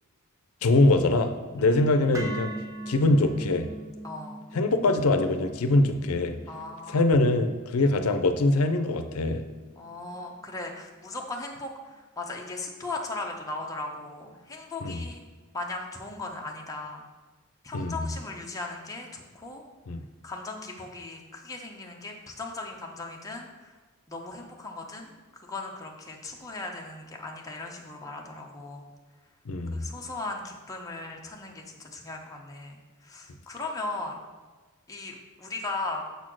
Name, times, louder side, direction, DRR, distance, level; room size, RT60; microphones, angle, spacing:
voice 1, 0.6-2.5 2.9-3.7 4.5-6.4 6.9-9.4 14.8-15.0 17.7-18.1 19.9-20.0 29.5-29.8, left 2 dB, 85° left, 8 dB, 0.5 m, -23 dB
voice 2, 1.6-2.2 4.0-4.4 6.5-7.0 9.7-15.2 15.5-17.0 17.6-19.6 20.2-23.7 24.1-28.9 29.7-34.2 34.9-36.0, left 2 dB, 15° left, 0 dB, 0.9 m, -38 dB
sound 1, 2.1-10.3, right 1 dB, 15° right, 0.8 m, -42 dB
6.8 x 4.2 x 6.1 m, 1.3 s
head